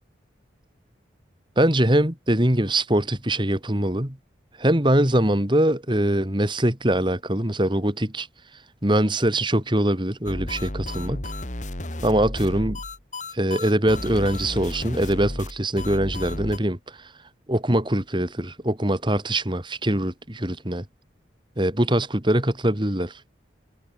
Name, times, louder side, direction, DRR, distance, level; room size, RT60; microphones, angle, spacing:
voice 1, 1.6-4.2 4.6-8.3 8.8-11.3 12.0-12.8 13.3-16.8 17.5-20.8 21.6-23.1, right 1 dB, 25° right, 2.5 m, -22 dB
sound 1, 10.3-16.6, left 1 dB, 40° left, 2.7 m, -33 dB
head